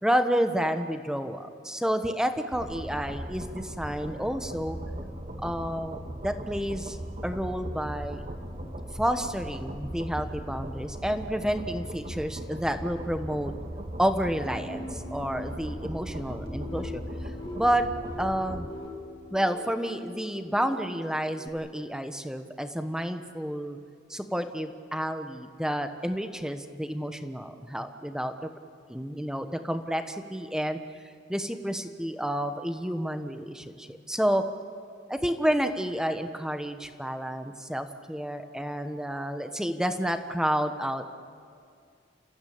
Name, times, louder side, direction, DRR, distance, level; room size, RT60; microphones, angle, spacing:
voice 1, 0.0-4.8 5.4-8.2 8.9-13.6 14.0-17.0 17.5-17.9 18.2-18.7 19.3-23.8 24.1-28.5 28.9-30.8 31.3-34.4 35.1-41.0, equal, 5° right, 8 dB, 1.1 m, -30 dB
sound 1, 2.5-18.7, equal, 40° right, 2.1 m, -38 dB
sound 2, 14.5-21.5, left 1 dB, 25° left, 2.5 m, -42 dB
30.0 x 15.5 x 8.7 m, 2.3 s
head